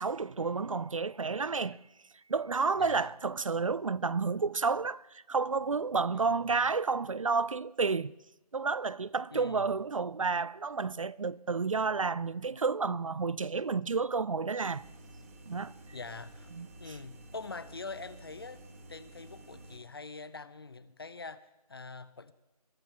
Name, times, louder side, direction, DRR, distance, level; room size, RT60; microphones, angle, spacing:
voice 1, 0.0-1.8 2.3-8.1 8.5-14.8 15.5-15.7 16.5-16.7, right 4 dB, 55° right, 0.5 m, -31 dB
voice 2, 2.8-3.1 6.1-6.6 9.3-9.8 15.9-16.5 16.8-18.6 18.9-22.3, left 4 dB, 35° left, 0.7 m, -44 dB
sound 1, 14.6-19.8, right 1 dB, 20° right, 1.4 m, -52 dB
22.5 x 11.5 x 4.6 m
figure-of-eight pair, 170°, 20 cm